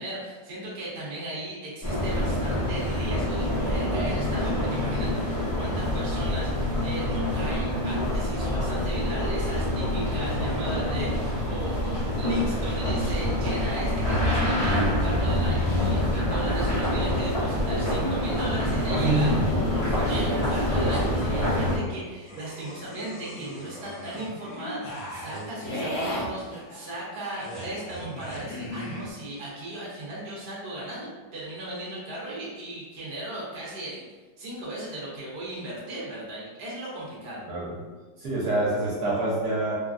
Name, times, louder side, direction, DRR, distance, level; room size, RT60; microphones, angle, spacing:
voice 1, 0.0-19.3 19.8-34.0 34.4-37.4, right 1 dB, 45° right, -6 dB, 0.9 m, -37 dB
sound 1, 1.8-21.8, left 1 dB, 60° left, 0.4 m, -26 dB
voice 2, 3.9-4.2 19.0-19.5 37.5-37.7 38.2-39.8, right 2 dB, 65° right, -7 dB, 1.2 m, -26 dB
sound 2, 20.7-21.8 22.3-29.1, equal, 85° left, 1.3 m, -37 dB
3.3 x 2.1 x 2.4 m, 1.3 s
omnidirectional pair, 1.9 m